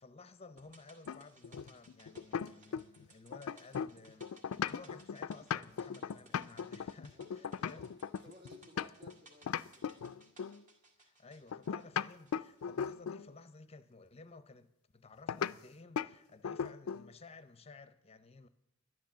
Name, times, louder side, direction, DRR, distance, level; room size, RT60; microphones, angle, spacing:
voice 1, 0.0-7.9 11.0-18.5, left 3 dB, 30° left, 0.6 m, -55 dB
sound 1, 0.6-12.9 13.2-13.3, right 3 dB, 40° right, 1.8 m, -63 dB
sound 2, 1.1-3.0 3.3-9.1 9.5-10.6 11.5-13.3 15.3-15.5 16.0-16.1 16.4-17.1, left 7 dB, 90° left, 0.4 m, -38 dB
voice 2, 7.1-10.2, left 1 dB, 55° right, 2.5 m, -59 dB
11.0 x 10.5 x 7.2 m
head